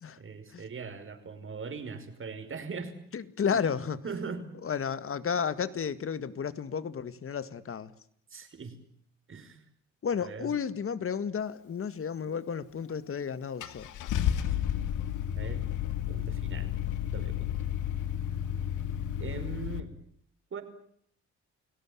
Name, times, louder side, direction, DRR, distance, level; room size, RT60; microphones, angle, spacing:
voice 1, 0.2-2.9 4.0-4.5 8.3-8.8 9.3-9.6 10.2-10.5 15.3-15.7 16.1-16.7 17.1-17.5 19.2-19.9 20.5-20.6, right 5 dB, 45° right, 9 dB, 5.4 m, -40 dB
voice 2, 3.1-4.0 4.6-7.9 10.0-13.9, left 7 dB, 45° left, 14 dB, 2.0 m, -32 dB
Car / Engine starting, 12.9-13.0 13.6-19.8, left 10 dB, 90° left, 1.9 m, -32 dB
29.5 x 18.0 x 8.7 m, 0.65 s
cardioid pair, 90°, 30 cm